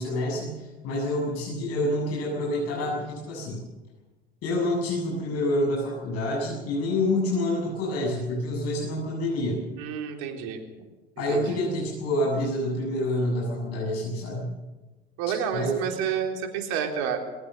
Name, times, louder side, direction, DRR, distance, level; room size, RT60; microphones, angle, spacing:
voice 1, 0.0-3.6 4.4-9.6 11.2-14.5 15.5-15.9, left 1 dB, 50° left, -2 dB, 7.7 m, -27 dB
voice 2, 9.8-10.6 11.3-11.6 15.2-17.2, right 8 dB, 65° right, 3 dB, 4.0 m, -29 dB
21.5 x 18.5 x 6.9 m, 1.2 s
hypercardioid pair, 85°, 30 cm